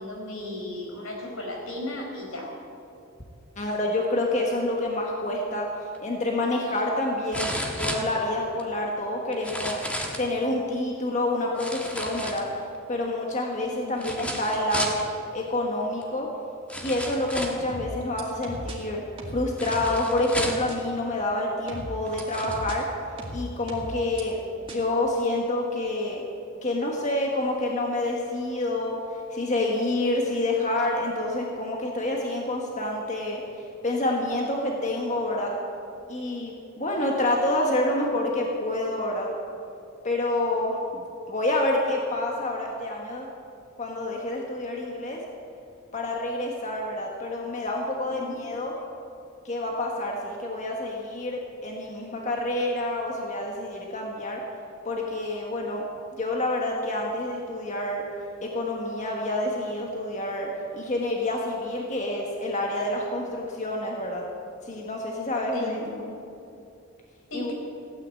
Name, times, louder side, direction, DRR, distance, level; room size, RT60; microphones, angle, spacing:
voice 1, 0.0-2.5 13.7-14.4 48.2-48.4 65.5-66.0 67.3-67.5, left 1 dB, 85° left, -1 dB, 4.5 m, -35 dB
voice 2, 3.6-5.7 6.0-9.8 10.2-12.5 12.9-15.0 15.3-16.3 16.8-19.0 19.3-22.9 23.3-24.4 24.7-26.2 26.6-35.5 36.1-39.3 40.0-43.3 43.8-45.2 45.9-48.7 49.4-54.4 54.8-55.8 56.1-58.0 58.4-64.2 64.6-65.8 67.3-67.5, left 1 dB, 35° left, 0 dB, 1.5 m, -28 dB
sound 1, 5.9-6.0 7.3-8.6 9.3-10.3 11.6-12.8 14.0-15.0 16.0-16.1 16.7-17.7 19.6-20.7 21.5-21.6 22.0-22.6 23.2-23.3, equal, 5° left, 1.5 m, -33 dB
sound 2, 17.7-18.8 19.2-20.0 20.7-20.8 21.7-22.8 23.2-24.2 24.7-24.8, equal, 25° right, 2.2 m, -36 dB
16.0 x 9.7 x 8.4 m, 2.6 s
head